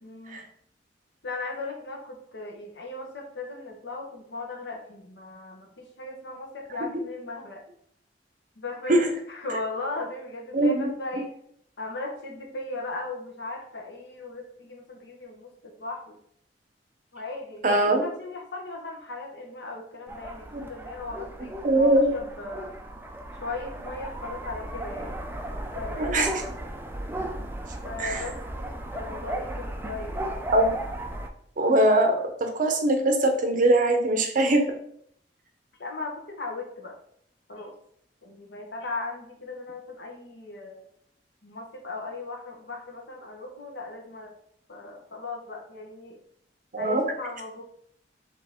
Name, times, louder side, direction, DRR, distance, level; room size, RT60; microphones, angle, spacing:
voice 1, 0.0-0.4 1.2-7.6 8.6-11.3 11.8-16.2 17.1-22.7 23.4-25.2 25.7-26.2 27.8-30.2 35.8-37.0 37.5-37.7 38.2-40.8 41.4-44.3 44.7-46.2 46.8-47.6, left 2 dB, 70° left, 1 dB, 1.0 m, -37 dB
voice 2, 10.5-10.9 17.6-18.1 20.5-20.6 21.6-22.1 26.0-26.3 28.0-28.2 30.5-30.8 31.6-32.1 32.4-34.6 46.7-47.0, right 1 dB, 50° right, 5 dB, 0.7 m, -21 dB
sound 1, 20.1-31.3, right 1 dB, 10° right, 0.4 m, -36 dB
4.7 x 2.9 x 3.5 m, 0.66 s
head